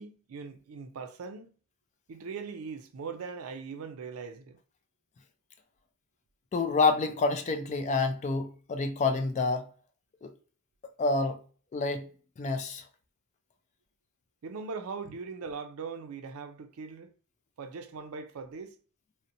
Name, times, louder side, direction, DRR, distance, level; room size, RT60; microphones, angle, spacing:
voice 1, 0.0-1.5 2.1-4.6 14.4-17.1 17.6-18.8, right 5 dB, 80° right, 0.4 m, -40 dB
voice 2, 6.5-9.6 10.2-10.3 11.0-11.4 11.7-12.0 12.4-12.8, left 3 dB, 35° left, 0.3 m, -28 dB
2.7 x 2.0 x 2.5 m
head